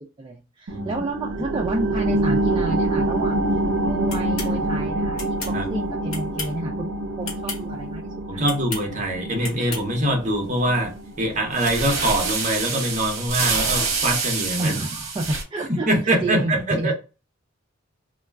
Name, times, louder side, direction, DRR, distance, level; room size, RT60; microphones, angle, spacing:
voice 1, 0.2-3.4 3.8-5.2 5.7-6.9 7.2-8.4 14.6-15.9 16.2-16.9, right 2 dB, 20° right, 0.3 m, -29 dB
voice 2, 0.7-1.0 5.5-5.6 8.3-14.7 15.7-16.9, right 1 dB, 35° right, 0.8 m, -24 dB
sound 1, 0.7-11.8 12.2-12.3, right 1 dB, 90° right, 0.5 m, -26 dB
sound 2, 4.1-4.5 5.2-5.6 6.1-6.6 7.2-7.6 8.4-8.9 9.4-9.9, left 3 dB, 70° left, 1.0 m, -33 dB
sound 3, 10.5-10.7 11.6-15.4, right 4 dB, 65° right, 0.8 m, -26 dB
2.2 x 2.2 x 3.2 m
head